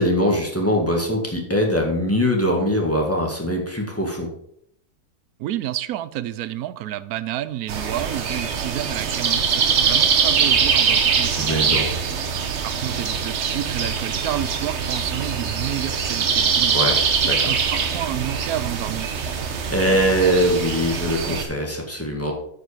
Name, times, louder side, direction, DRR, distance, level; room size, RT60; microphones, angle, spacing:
voice 1, 0.0-4.3 11.4-11.9 16.7-17.0 17.3-17.4 19.7-22.3, equal, 10° left, 1.6 m, -22 dB
voice 2, 5.4-12.2 12.6-16.8 17.2-19.2, right 13 dB, 70° right, 1.0 m, -30 dB
sound 1, 7.7-21.4, right 6 dB, 50° right, 1.0 m, -23 dB
9.2 x 5.2 x 5.0 m
omnidirectional pair, 1.7 m